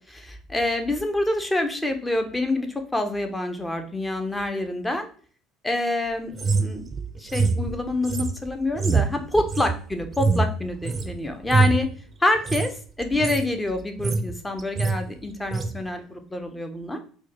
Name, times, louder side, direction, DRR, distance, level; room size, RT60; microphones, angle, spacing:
voice 1, 0.1-5.1 5.6-6.8 7.2-11.9 12.2-17.0, left 2 dB, 10° left, 6 dB, 0.6 m, -27 dB
sound 1, 6.4-11.1 11.4-11.9 12.4-12.7 13.0-13.5 13.8-14.3 14.6-15.0 15.5-15.7, right 4 dB, 30° right, 0.5 m, -24 dB
4.5 x 2.2 x 2.9 m, 0.42 s
supercardioid pair, 95°, 0 cm